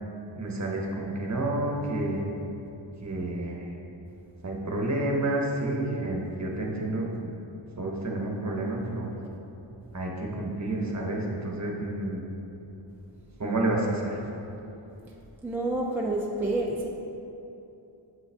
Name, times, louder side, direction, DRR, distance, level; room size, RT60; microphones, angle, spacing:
voice 1, 0.4-2.2 3.0-3.6 4.4-7.3 7.8-9.1 9.9-12.2 13.4-14.2, right 2 dB, 35° right, -1 dB, 1.0 m, -29 dB
voice 2, 15.4-16.9, right 2 dB, 5° right, -2 dB, 0.4 m, -28 dB
7.7 x 5.4 x 3.4 m, 2.9 s
wide cardioid pair, 110°, 46 cm